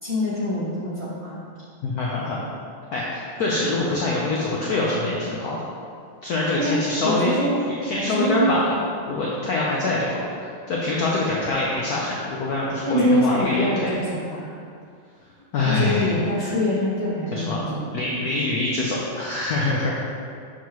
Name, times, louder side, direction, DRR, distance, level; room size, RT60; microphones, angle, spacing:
voice 1, 0.0-1.4 6.6-7.6 8.0-8.4 12.9-14.5 15.6-17.9, left 1 dB, 15° right, -11 dB, 1.3 m, -24 dB
voice 2, 1.8-2.4 2.9-5.6 6.2-7.3 7.8-8.8 9.1-13.9 15.5-16.2 17.3-19.9, left 2 dB, 75° left, -4 dB, 0.8 m, -25 dB
6.9 x 4.6 x 3.0 m, 2.3 s
omnidirectional pair, 2.4 m